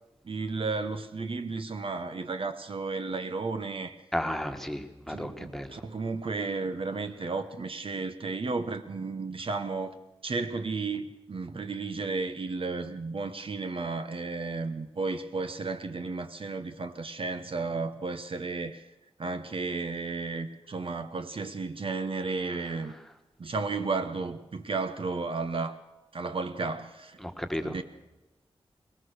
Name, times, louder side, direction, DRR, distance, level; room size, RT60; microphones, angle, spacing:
voice 1, 0.2-4.0 5.1-10.0 10.2-18.8 19.2-23.0 23.4-25.7 26.1-27.2 27.6-27.8, right 3 dB, 60° right, 1.1 m, -33 dB
voice 2, 4.1-5.7 27.2-27.7, equal, 5° left, 1.7 m, -33 dB
21.5 x 19.0 x 6.5 m
wide cardioid pair, 105°, 11 cm